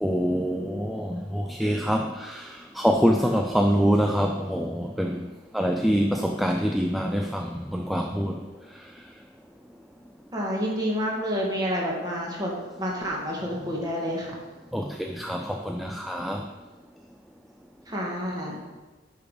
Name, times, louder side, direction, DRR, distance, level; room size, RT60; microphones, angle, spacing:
voice 1, 0.0-5.3 5.5-8.4 14.7-16.5, equal, ahead, 3 dB, 0.3 m, -25 dB
voice 2, 10.3-14.3 17.9-18.6, equal, 20° right, -3 dB, 1.9 m, -29 dB
9.8 x 5.0 x 5.1 m, 1.2 s
head